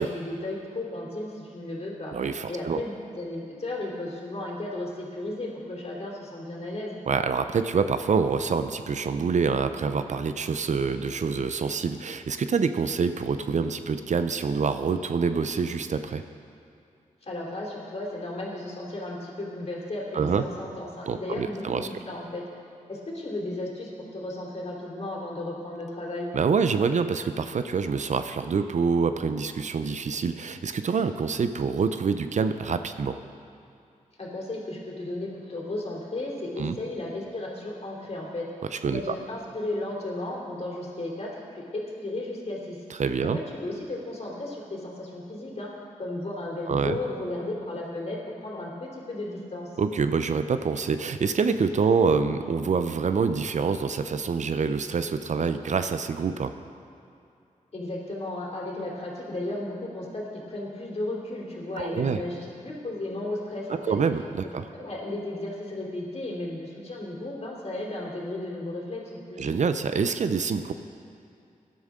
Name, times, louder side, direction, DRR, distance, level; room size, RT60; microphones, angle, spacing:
voice 1, 0.0-2.1 2.5-7.0 17.2-22.4 22.9-26.3 34.2-38.5 38.9-42.8 43.2-49.7 57.7-64.0 64.8-69.5, left 2 dB, 50° left, -3 dB, 3.3 m, -34 dB
voice 2, 2.1-2.8 7.1-16.2 20.1-20.4 21.1-22.0 26.3-33.2 36.6-36.8 38.7-39.1 42.9-43.4 46.7-47.0 49.8-56.5 61.8-62.2 63.7-64.7 69.4-70.7, right 5 dB, 55° right, 10 dB, 0.6 m, -26 dB
17.0 x 11.0 x 3.8 m, 2.5 s
cardioid pair, 50°, 14 cm